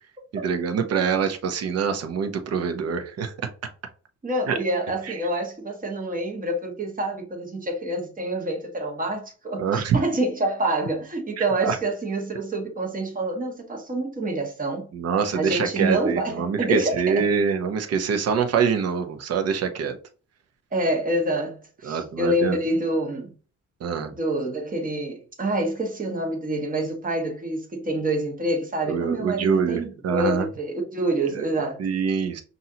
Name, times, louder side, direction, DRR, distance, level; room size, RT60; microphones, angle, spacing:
voice 1, 0.3-3.5 4.5-4.6 5.0-5.2 9.6-10.0 11.6-11.8 14.9-20.0 21.8-22.6 23.8-24.1 28.9-30.5 31.3-31.5 31.8-32.4, right 6 dB, 55° right, 0.8 m, -25 dB
voice 2, 4.2-14.9 15.3-17.3 20.7-23.3 24.2-31.8, right 1 dB, 25° right, 1.4 m, -27 dB
5.4 x 2.7 x 2.8 m
cardioid pair, 90°, 30 cm